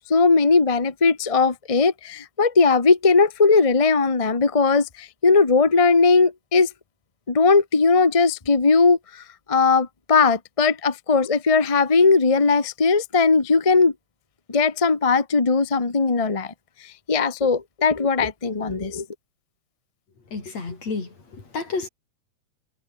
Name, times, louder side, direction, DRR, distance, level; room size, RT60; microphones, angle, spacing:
voice 1, 0.1-6.7 7.3-9.0 9.5-13.9 14.5-16.5 17.1-19.0, left 4 dB, 35° left, 0.5 m, -19 dB
voice 2, 20.3-21.9, left 4 dB, 60° left, 6.6 m, -31 dB
omnidirectional pair, 3.4 m